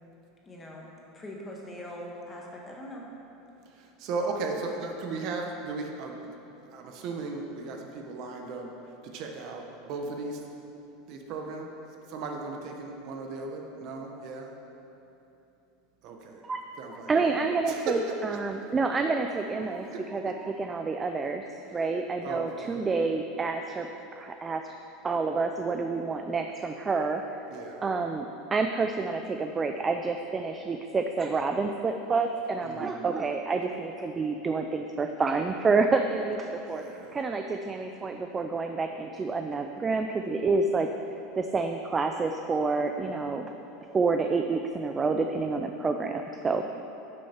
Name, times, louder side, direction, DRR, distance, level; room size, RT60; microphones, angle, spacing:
voice 1, 0.4-0.9 1.1-3.0, left 1 dB, 15° left, -2 dB, 1.3 m, -41 dB
voice 2, 4.0-6.3 6.7-8.7 9.0-10.4 11.1-11.7 12.1-14.5 16.0-16.4 16.8-17.1 17.7-18.0 18.3-18.4 19.7-20.0 22.2-22.8 27.5-27.8 32.6-32.9 36.7-37.2, right 3 dB, 45° right, 2 dB, 1.0 m, -36 dB
voice 3, 16.4-21.4 21.7-23.9 24.1-24.7 25.0-27.2 27.8-36.8 37.1-40.9 41.3-43.5 43.9-46.6, right 4 dB, 15° right, 5 dB, 0.3 m, -28 dB
12.0 x 6.4 x 4.4 m, 3.0 s
supercardioid pair, 160°, 0 cm